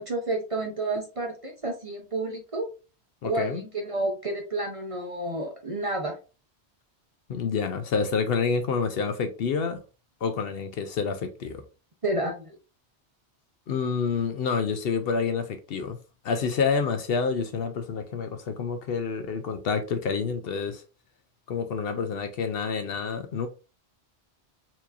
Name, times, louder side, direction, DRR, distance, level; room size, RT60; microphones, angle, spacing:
voice 1, 0.0-2.7 3.2-6.2 12.0-12.6, right 2 dB, 35° right, 0.7 m, -30 dB
voice 2, 3.2-3.6 7.3-9.8 10.2-11.6 13.7-16.0 16.2-20.8 21.5-23.5, left 5 dB, 65° left, 0.7 m, -28 dB
4.4 x 2.8 x 2.4 m
omnidirectional pair, 1.1 m